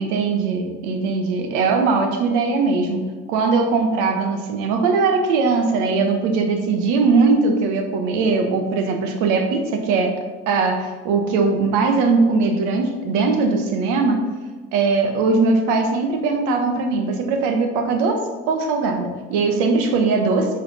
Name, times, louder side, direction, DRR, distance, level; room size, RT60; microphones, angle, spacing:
voice 1, 0.0-3.0 3.3-10.2 10.5-14.2 14.7-20.5, right 4 dB, 70° right, 4 dB, 1.1 m, -20 dB
5.1 x 4.4 x 5.5 m, 1.4 s
supercardioid pair, 90°, 32 cm